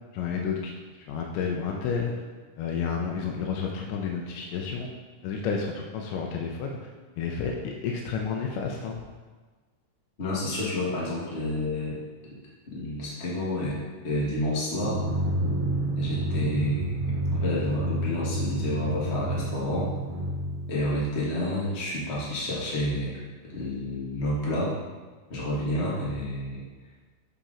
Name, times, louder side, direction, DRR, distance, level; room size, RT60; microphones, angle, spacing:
voice 1, 0.1-0.7 1.1-2.1 2.6-4.9 5.2-6.8 7.2-9.0, left 6 dB, 85° left, 1 dB, 2.2 m, -30 dB
voice 2, 10.2-12.0 12.7-13.8 14.0-15.0 15.9-19.9 20.7-23.1 23.5-24.7 25.3-26.6, left 1 dB, 60° left, -6 dB, 0.6 m, -29 dB
Drum, 14.8-21.3, right 1 dB, 75° right, 2.0 m, -29 dB
7.1 x 4.0 x 3.7 m, 1.4 s
omnidirectional pair, 3.7 m